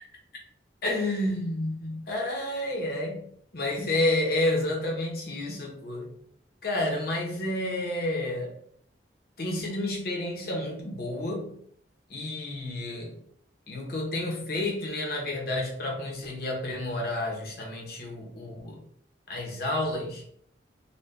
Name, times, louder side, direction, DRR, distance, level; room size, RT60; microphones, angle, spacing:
voice 1, 0.8-3.3 3.5-6.1 6.6-8.5 9.4-11.6 12.1-13.2 13.7-18.9 19.3-20.2, left 1 dB, 55° left, -1 dB, 1.1 m, -30 dB
4.0 x 2.5 x 3.4 m, 0.65 s
head